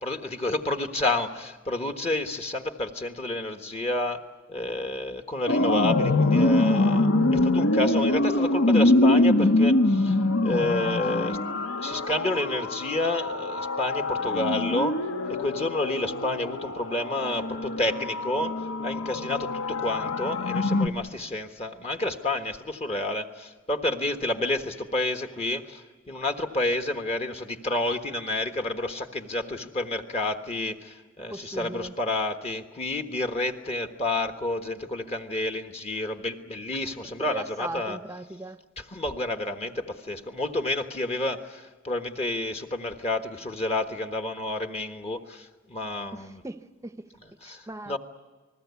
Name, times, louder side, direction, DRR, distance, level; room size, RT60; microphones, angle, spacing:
voice 1, 0.0-4.2 4.5-11.4 11.8-15.0 15.3-38.2 38.8-46.4 47.1-48.0, left 2 dB, 30° left, 1.3 m, -30 dB
sound 1, 5.5-20.9, left 2 dB, 80° left, 1.2 m, -24 dB
voice 2, 31.3-31.9 37.2-38.6 46.1-47.1 47.4-48.0, right 2 dB, 15° right, 0.8 m, -38 dB
29.5 x 20.5 x 8.4 m
head